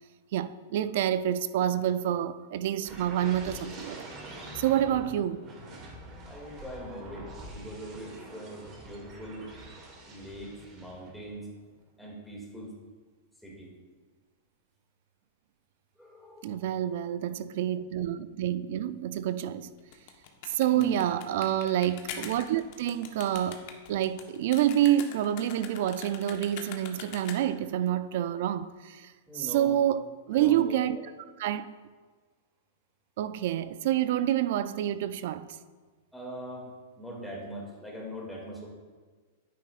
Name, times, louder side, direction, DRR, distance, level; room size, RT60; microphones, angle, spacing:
voice 1, 0.3-4.1 4.5-5.4 16.4-19.7 20.5-23.6 23.9-31.0 31.4-31.7 33.2-35.5, right 11 dB, 65° right, 0.4 m, -28 dB
sound 1, 2.8-11.3 11.7-12.0, right 1 dB, 35° right, 2.3 m, -45 dB
voice 2, 6.0-9.5 10.1-11.5 12.0-12.7 13.4-13.7 16.0-16.7 20.7-21.0 29.3-29.7 30.3-30.8 36.1-36.7 37.0-38.7, equal, ahead, 2.4 m, -42 dB
sound 2, 19.8-27.7, left 7 dB, 55° left, 1.2 m, -43 dB
9.8 x 9.1 x 2.5 m
hypercardioid pair, 130°, 0 cm